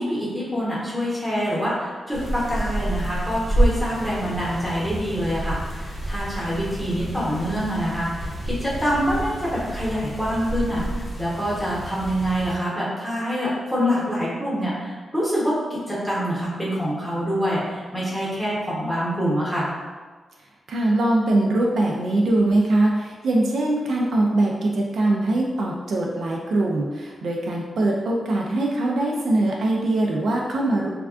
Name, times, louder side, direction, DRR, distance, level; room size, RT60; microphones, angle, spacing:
voice 1, 0.0-10.8 11.2-15.5 15.9-19.7, equal, 5° left, -8 dB, 0.9 m, -25 dB
sound 1, 2.1-12.6, right 1 dB, 30° left, 0.6 m, -29 dB
voice 2, 20.7-30.9, right 2 dB, 65° right, -2 dB, 0.3 m, -22 dB
3.4 x 2.3 x 2.4 m, 1.4 s
wide cardioid pair, 170°, 0 cm